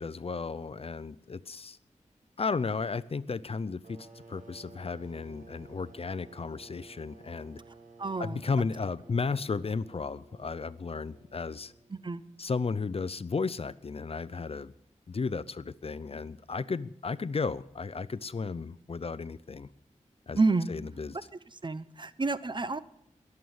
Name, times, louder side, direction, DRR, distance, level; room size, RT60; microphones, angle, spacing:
voice 1, 0.0-1.8 2.4-7.6 8.2-11.7 12.4-14.7 15.1-19.7 20.3-20.4 20.7-21.2, left 4 dB, 50° left, 17 dB, 0.6 m, -34 dB
sound 1, 3.8-12.2, right 3 dB, 75° right, 2.6 m, -54 dB
voice 2, 8.0-8.4 11.9-12.2 20.3-20.7 21.6-22.8, right 3 dB, 35° right, 15 dB, 0.8 m, -29 dB
20.5 x 7.9 x 7.1 m, 0.74 s
cardioid pair, 55°, 13 cm